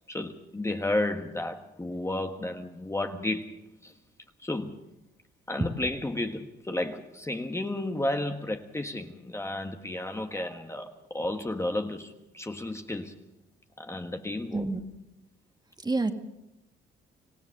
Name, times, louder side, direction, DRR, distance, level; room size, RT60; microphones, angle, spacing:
voice 1, 0.1-3.9 4.4-4.8 5.5-13.1 13.8-14.7, left 1 dB, 15° left, 5 dB, 1.5 m, -32 dB
voice 2, 14.5-14.9 15.8-16.1, right 3 dB, 20° right, 6 dB, 1.8 m, -27 dB
26.0 x 16.5 x 6.7 m, 0.88 s
cardioid pair, 90°, 20 cm